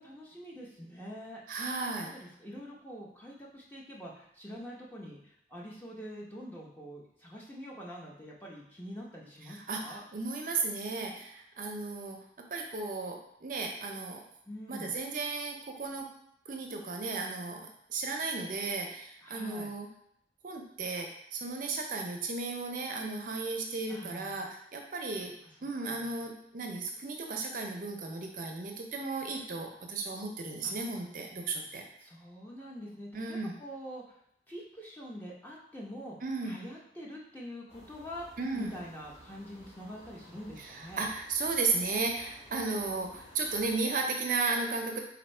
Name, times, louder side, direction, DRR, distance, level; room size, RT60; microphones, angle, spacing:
voice 1, 0.0-1.4 2.1-10.0 14.5-14.9 19.2-19.7 23.9-24.5 25.2-25.3 25.9-26.2 30.6-30.7 32.0-34.2 34.5-36.2 36.4-38.3 38.5-41.1, equal, 10° left, -4 dB, 0.7 m, -45 dB
voice 2, 1.5-2.1 9.5-12.2 12.5-14.2 14.7-16.1 16.5-19.9 20.4-25.3 25.6-31.8 33.1-33.6 36.2-36.6 38.4-38.7 40.6-45.0, right 3 dB, 50° right, 2 dB, 0.5 m, -35 dB
sound 1, 37.7-43.8, equal, 40° left, 1.2 m, -55 dB
4.3 x 2.6 x 4.3 m, 0.73 s
head